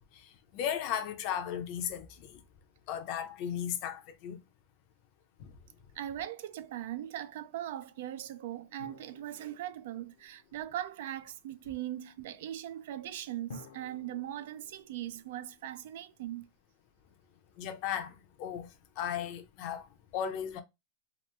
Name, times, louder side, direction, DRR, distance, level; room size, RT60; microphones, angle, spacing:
voice 1, 0.5-2.4 2.9-4.4 5.4-5.5 17.6-18.7 19.0-19.9 20.1-20.6, left 9 dB, 40° left, 0.5 m, -35 dB
voice 2, 6.0-16.5, right 12 dB, 65° right, 0.3 m, -40 dB
sound 1, 8.8-11.1 13.5-16.4, left 4 dB, 75° left, 0.7 m, -55 dB
3.0 x 2.0 x 3.1 m
supercardioid pair, 160°, 0 cm